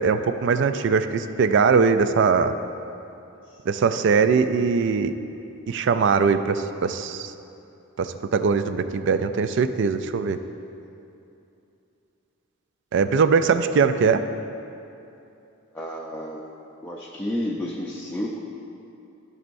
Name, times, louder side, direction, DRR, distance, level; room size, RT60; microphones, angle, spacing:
voice 1, 0.0-2.6 3.7-5.1 5.7-7.3 8.0-10.4 12.9-14.2, right 5 dB, 55° right, 11 dB, 0.3 m, -21 dB
voice 2, 15.7-16.5 16.8-18.4, left 1 dB, 10° left, -4 dB, 0.5 m, -31 dB
14.0 x 5.4 x 2.6 m, 2.8 s
head